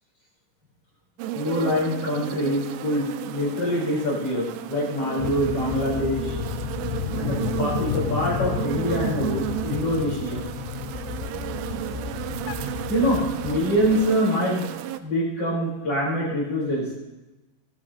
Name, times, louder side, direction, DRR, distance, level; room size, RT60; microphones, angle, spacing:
sound 1, 1.2-15.0, right 12 dB, 85° right, 3.0 m, -33 dB
voice 1, 1.3-6.4 7.2-10.5 12.9-14.7 15.0-16.8, equal, 30° left, -5 dB, 4.7 m, -25 dB
sound 2, 5.2-14.1, left 9 dB, 85° left, 2.3 m, -32 dB
18.0 x 13.0 x 2.9 m, 1.1 s
omnidirectional pair, 5.6 m